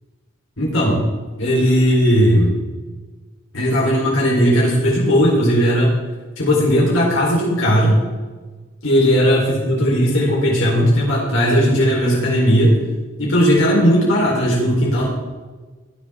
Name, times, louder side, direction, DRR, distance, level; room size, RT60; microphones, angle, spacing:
voice 1, 0.6-1.1 1.4-2.6 3.5-5.9 6.4-8.0 8.8-12.8 13.2-15.1, equal, 75° left, -4 dB, 4.1 m, -16 dB
20.0 x 11.5 x 3.7 m, 1.3 s
head